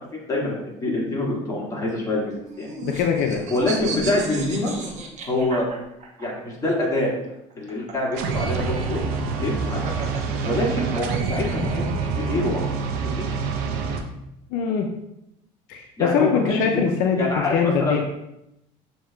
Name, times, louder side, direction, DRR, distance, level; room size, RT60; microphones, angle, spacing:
voice 1, 0.1-2.3 2.6-2.7 3.5-4.7 5.2-5.7 6.2-7.1 7.6-9.0 9.4-9.8 10.4-13.3 16.0-16.8 17.2-18.0, left 2 dB, 20° left, -4 dB, 1.6 m, -25 dB
sound 1, 2.2-6.3 7.5-11.7, right 4 dB, 45° right, 0.9 m, -34 dB
voice 2, 2.8-3.4 14.5-14.9 15.7-18.0, left 6 dB, 75° left, 3 dB, 0.5 m, -22 dB
sound 2, 8.1-14.0, right 5 dB, 85° right, 0.6 m, -27 dB
7.1 x 2.8 x 2.3 m, 0.84 s
supercardioid pair, 100°, 16 cm